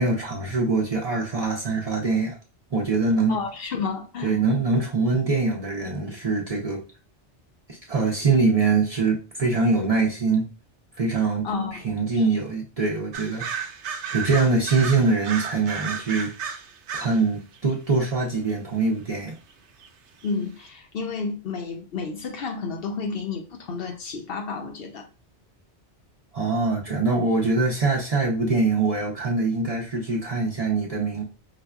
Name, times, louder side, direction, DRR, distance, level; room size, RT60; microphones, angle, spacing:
voice 1, 0.0-2.4 2.7-3.4 4.2-6.8 7.7-10.5 11.0-11.5 11.8-13.6 14.1-16.3 16.9-19.4 26.3-31.2, right 3 dB, 40° right, 0.6 m, -23 dB
voice 2, 3.3-4.4 11.4-11.8 12.1-12.2 20.2-25.1, left 4 dB, 60° left, 0.7 m, -31 dB
sound 1, 13.1-17.2 17.5-17.9 19.5-19.6 19.8-19.9 20.2-20.3, right 7 dB, 85° right, 0.9 m, -33 dB
4.9 x 2.2 x 2.2 m
omnidirectional pair, 1.2 m